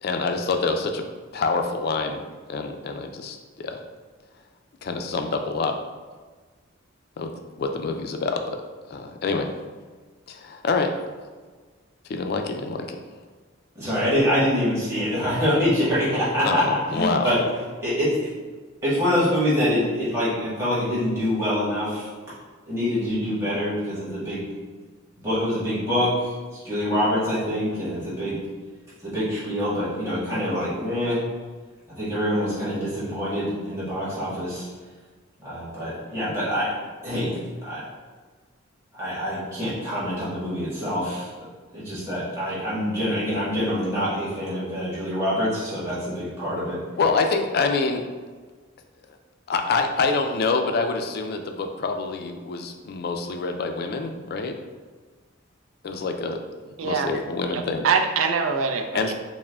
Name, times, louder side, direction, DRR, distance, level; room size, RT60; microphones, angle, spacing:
voice 1, 0.0-1.0 1.3-2.2 2.5-3.8 4.8-5.8 7.2-7.3 7.6-8.6 8.9-9.5 10.3-11.0 12.1-13.0 16.4-17.3 47.0-48.0 49.5-54.6 55.8-56.4 56.8-57.9 58.9-59.1, left 4 dB, 50° left, 5 dB, 0.3 m, -26 dB
voice 2, 13.7-17.4 17.8-18.1 18.8-22.1 22.7-24.4 25.2-26.3 26.6-28.4 29.0-31.2 31.9-34.7 35.4-36.7 37.0-37.8 38.9-41.3 41.7-46.8, equal, 15° right, -11 dB, 1.4 m, -25 dB
voice 3, 57.5-59.1, right 5 dB, 90° right, 5 dB, 0.4 m, -24 dB
4.6 x 2.1 x 3.4 m, 1.4 s
head